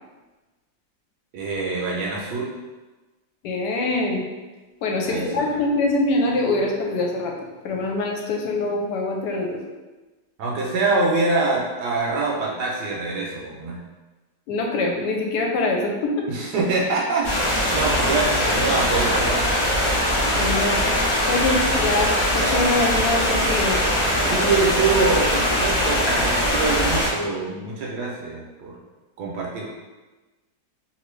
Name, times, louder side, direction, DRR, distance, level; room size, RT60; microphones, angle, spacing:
voice 1, 1.3-2.5 5.1-5.6 10.4-13.8 16.3-19.4 24.2-28.8 29.2-29.7, right 3 dB, 75° right, -3 dB, 1.1 m, -25 dB
voice 2, 3.4-4.2 4.8-7.3 7.6-9.6 14.5-16.3 20.3-20.8 21.3-22.1 22.3-23.8, left 2 dB, 75° left, 0 dB, 1.1 m, -24 dB
sound 1, 17.2-27.1, equal, 50° left, 0.3 m, -21 dB
3.0 x 2.5 x 3.1 m, 1.2 s
omnidirectional pair, 1.9 m